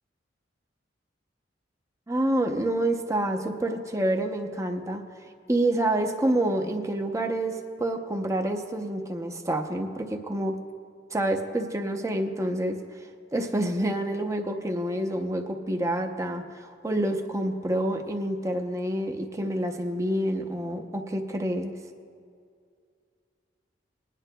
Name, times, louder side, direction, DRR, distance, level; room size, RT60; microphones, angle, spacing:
voice 1, 2.1-5.0 5.5-10.6 11.1-12.8 13.3-21.7, right 1 dB, 15° right, 4 dB, 0.6 m, -28 dB
20.0 x 10.0 x 2.2 m, 2.2 s
head